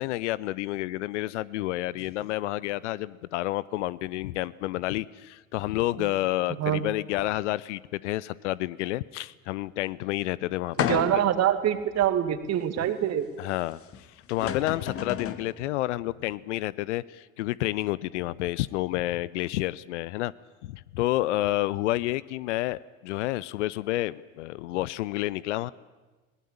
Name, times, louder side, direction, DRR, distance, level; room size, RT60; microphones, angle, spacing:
voice 1, 0.0-11.2 13.4-20.3 20.6-25.7, left 17 dB, 55° left, 20 dB, 0.7 m, -30 dB
sound 1, 10.8-11.4 12.0-12.1 13.9-14.0 14.3-15.5, left 8 dB, 35° left, 1.8 m, -31 dB
voice 2, 10.9-13.3, right 11 dB, 40° right, 11 dB, 2.1 m, -25 dB
22.0 x 19.5 x 8.6 m, 1.2 s
figure-of-eight pair, 70°, 42 cm